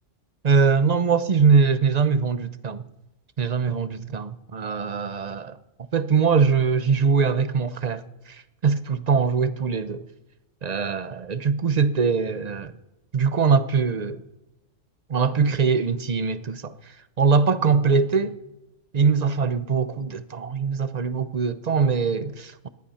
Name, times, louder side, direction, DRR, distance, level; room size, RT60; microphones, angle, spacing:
voice 1, 0.4-2.8 3.4-5.6 5.9-8.0 8.3-10.0 10.6-12.7 13.1-14.2 15.1-16.7 17.2-18.3 18.9-22.7, right 5 dB, 40° right, 0.7 m, -22 dB
19.0 x 12.0 x 5.6 m
omnidirectional pair, 1.3 m